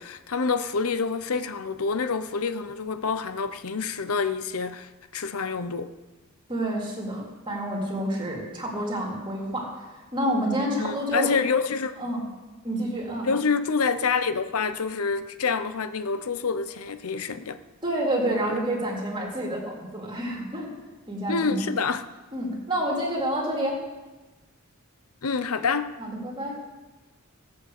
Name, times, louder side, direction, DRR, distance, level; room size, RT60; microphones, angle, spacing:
voice 1, 0.0-5.9 10.8-12.0 13.2-17.6 21.3-22.1 25.2-25.9, left 5 dB, 85° left, 0.7 m, -27 dB
voice 2, 6.5-9.7 9.9-11.3 12.0-12.2 12.6-13.3 17.8-20.7 21.1-21.6 22.3-23.8 26.0-26.6, right 1 dB, 25° right, 3.7 m, -28 dB
16.0 x 8.7 x 6.6 m
head